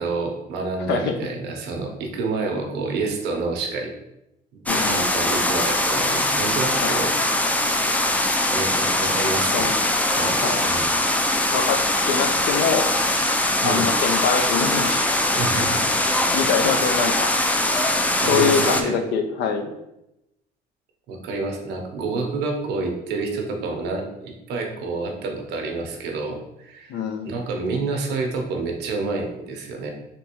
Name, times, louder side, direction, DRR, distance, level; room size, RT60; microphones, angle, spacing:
voice 1, 0.0-3.9 4.5-7.1 8.5-9.7 10.1-10.9 13.6-13.9 15.3-15.9 18.2-18.9 21.1-29.9, right 3 dB, 85° right, 2 dB, 0.7 m, -28 dB
voice 2, 4.7-5.1 6.8-7.0 9.5-9.8 10.4-10.7 11.5-11.8 12.1-12.9 13.6-15.0 16.3-17.3 18.2-19.7 26.9-27.3, left 6 dB, 80° left, 5 dB, 0.5 m, -24 dB
sound 1, 4.7-18.8, left 1 dB, 10° left, 0.3 m, -22 dB
3.4 x 2.9 x 2.9 m, 0.88 s
cardioid pair, 110°, 17 cm